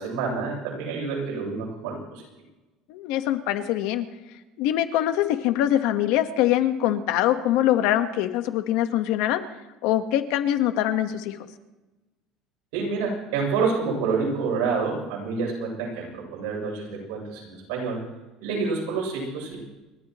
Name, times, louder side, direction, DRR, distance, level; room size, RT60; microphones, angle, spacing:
voice 1, 0.0-2.2 12.7-18.0 18.4-19.6, right 4 dB, 85° right, -1 dB, 7.4 m, -28 dB
voice 2, 2.9-4.1 4.6-9.4 9.8-11.4, left 12 dB, 70° left, 8 dB, 1.4 m, -23 dB
29.5 x 13.0 x 3.1 m, 1.1 s
cardioid pair, 160°, 0 cm